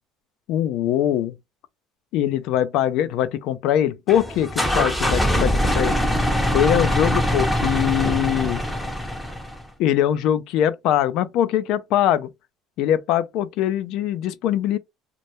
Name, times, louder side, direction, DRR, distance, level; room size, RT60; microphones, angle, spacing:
voice 1, 0.5-1.4 2.1-6.0 6.5-8.6 9.8-12.3 12.8-14.8, left 11 dB, 65° left, 0.3 m, -22 dB
sound 1, 4.1-9.6, equal, 5° left, 0.5 m, -22 dB
2.1 x 2.0 x 2.9 m
cardioid pair, 125°, 0 cm